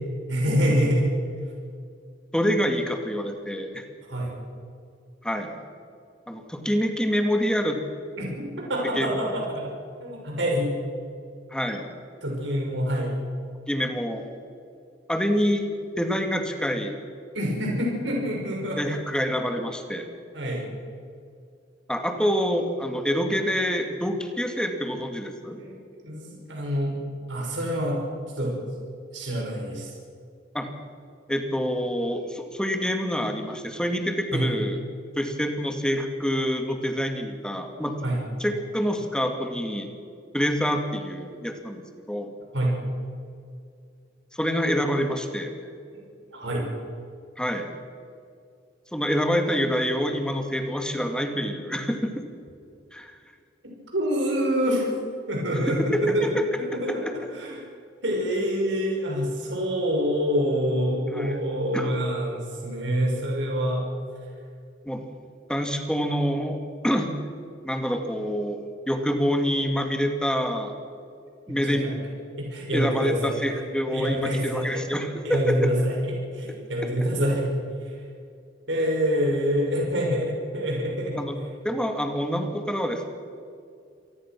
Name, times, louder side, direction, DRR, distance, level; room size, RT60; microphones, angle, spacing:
voice 1, 0.3-1.1 4.1-4.3 8.2-9.7 10.0-10.7 12.2-13.1 17.3-19.0 20.3-20.6 25.6-25.8 26.0-27.0 27.3-28.0 28.4-28.6 29.1-29.9 34.3-34.5 38.0-38.2 42.5-42.8 45.9-46.0 46.3-46.7 53.9-54.9 55.3-57.0 57.3-57.6 58.0-63.8 71.5-71.9 72.4-73.3 73.9-74.8 75.2-77.5 77.9-78.0 78.7-81.2, equal, 70° right, -1 dB, 6.0 m, -26 dB
voice 2, 2.3-3.8 5.2-5.5 6.3-7.8 9.0-9.4 11.5-11.9 13.7-14.2 15.1-15.7 16.0-16.9 18.8-20.1 21.9-25.6 30.5-30.7 31.3-34.8 35.2-38.0 38.4-39.9 40.3-42.3 44.3-45.5 47.4-47.7 48.9-52.2 52.9-53.2 55.7-56.4 57.0-57.1 61.1-61.4 61.7-61.9 64.9-65.0 65.5-66.6 66.8-67.1 67.6-68.6 68.9-70.7 71.5-71.9 72.7-75.7 81.2-81.4 81.6-83.1, equal, 5° left, 4 dB, 2.3 m, -26 dB
27.0 x 19.5 x 6.2 m, 2.3 s
head